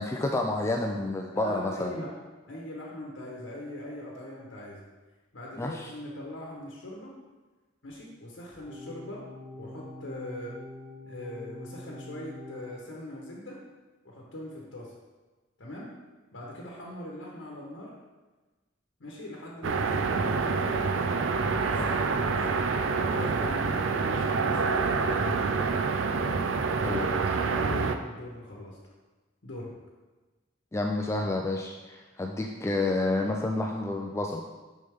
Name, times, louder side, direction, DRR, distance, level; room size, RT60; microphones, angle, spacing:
voice 1, 0.0-2.0 5.6-5.9 21.7-21.9 26.7-27.2 30.7-34.4, left 2 dB, 15° left, 2 dB, 0.3 m, -30 dB
voice 2, 1.3-2.1 2.5-4.8 5.3-7.1 7.8-9.3 9.6-10.6 11.1-13.6 14.0-14.9 15.6-15.9 16.3-17.9 19.0-20.9 21.4-22.5 23.1-25.6 26.7-27.1 27.5-28.8 29.4-29.7, left 1 dB, 75° left, -3 dB, 1.1 m, -41 dB
sound 1, 8.7-12.7, left 1 dB, 65° right, 1.6 m, -44 dB
sound 2, 19.6-28.0, right 4 dB, 80° right, 0.4 m, -27 dB
6.5 x 5.5 x 3.5 m, 1.2 s
head